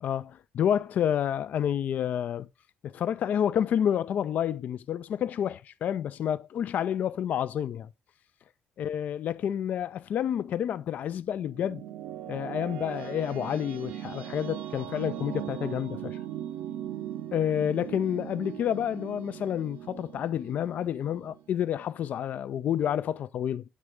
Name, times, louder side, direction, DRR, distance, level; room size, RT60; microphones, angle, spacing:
voice 1, 0.0-2.5 2.8-7.9 8.8-11.8 12.3-16.2 17.3-23.6, left 9 dB, 60° left, 0.4 m, -29 dB
sound 1, 11.0-22.1, right 11 dB, 80° right, 0.6 m, -39 dB
8.3 x 3.3 x 4.9 m
cardioid pair, 90°, 3 cm